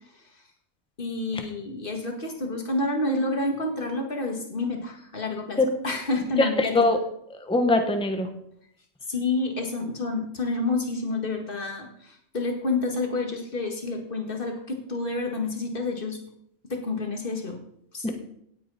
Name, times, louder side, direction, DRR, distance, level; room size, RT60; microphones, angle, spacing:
voice 1, 1.0-5.6 5.8-6.7 9.1-16.2 16.7-17.6 17.9-18.1, left 2 dB, 45° left, 3 dB, 2.2 m, -29 dB
voice 2, 6.4-7.0 7.4-8.3 18.0-18.1, left 2 dB, 5° left, 6 dB, 1.1 m, -22 dB
17.5 x 8.5 x 4.3 m, 0.71 s
omnidirectional pair, 1.3 m